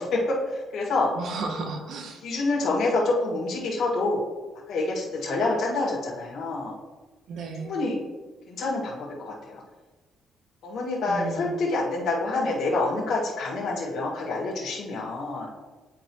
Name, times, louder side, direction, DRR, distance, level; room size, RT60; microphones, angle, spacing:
voice 1, 0.0-1.1 2.2-4.2 4.7-6.7 7.6-8.0 8.5-9.6 10.6-15.5, left 2 dB, 70° left, -5 dB, 1.8 m, -27 dB
voice 2, 1.2-2.2 7.3-7.7 11.1-11.6, right 3 dB, 70° right, 4 dB, 1.1 m, -33 dB
9.3 x 4.7 x 3.1 m, 1.2 s
cardioid pair, 120°, 0 cm